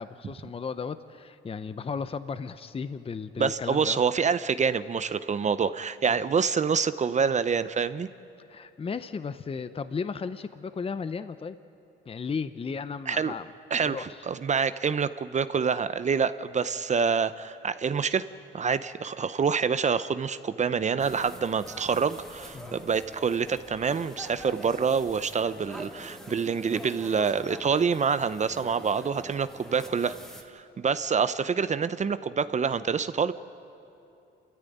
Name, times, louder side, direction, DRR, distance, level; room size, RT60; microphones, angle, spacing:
voice 1, 0.0-4.0 8.5-11.6 12.1-13.5 13.8-14.2 22.5-22.8, left 5 dB, 30° left, 12 dB, 0.7 m, -35 dB
voice 2, 3.4-8.1 13.1-13.3 13.7-18.3 18.5-30.2 30.5-33.3, right 6 dB, 35° right, 14 dB, 0.7 m, -26 dB
sound 1, 21.0-30.4, equal, ahead, 2.2 m, -45 dB
27.5 x 14.0 x 9.3 m, 2.9 s
cardioid pair, 90°, 20 cm